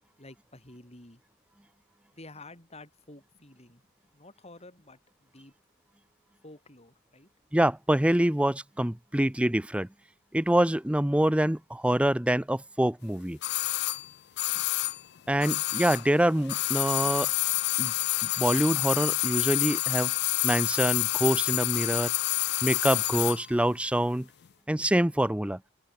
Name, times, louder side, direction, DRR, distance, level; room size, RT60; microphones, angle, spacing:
voice 1, 0.2-1.2 2.1-3.9 4.1-5.5 6.4-7.3, left 2 dB, 30° left, 4.9 m, -50 dB
voice 2, 7.5-9.9 10.3-13.4 15.3-17.3 17.8-17.9 18.4-20.1 20.4-22.1 22.6-24.3 24.7-25.6, right 1 dB, 5° right, 0.6 m, -25 dB
sound 1, 13.4-16.2 16.4-23.4 23.7-23.8, left 18 dB, 50° left, 0.4 m, -28 dB
open air
head